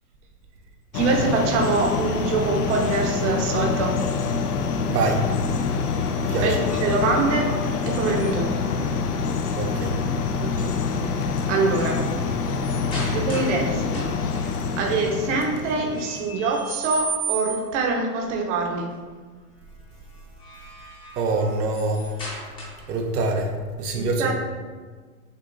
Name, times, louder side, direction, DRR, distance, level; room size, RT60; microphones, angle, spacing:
sound 1, 0.9-16.4, left 5 dB, 80° left, 0.6 m, -26 dB
voice 1, 0.9-4.0 6.4-7.5 7.8-8.5 10.4-10.7 11.5-12.0 13.1-14.4 14.8-18.9 23.9-24.3, right 3 dB, 50° right, 1 dB, 0.8 m, -24 dB
voice 2, 4.9-5.3 6.2-6.6 9.6-10.0 21.2-22.1 22.9-23.5 23.8-24.3, right 3 dB, 85° right, 2 dB, 0.8 m, -25 dB
sound 2, 5.8-8.6 10.4-10.8 11.2-13.6 13.9-14.4 15.9-17.8 20.1-23.0, right 3 dB, 10° left, 0.7 m, -37 dB
6.4 x 2.7 x 2.5 m, 1.5 s
hypercardioid pair, 135°, 46 cm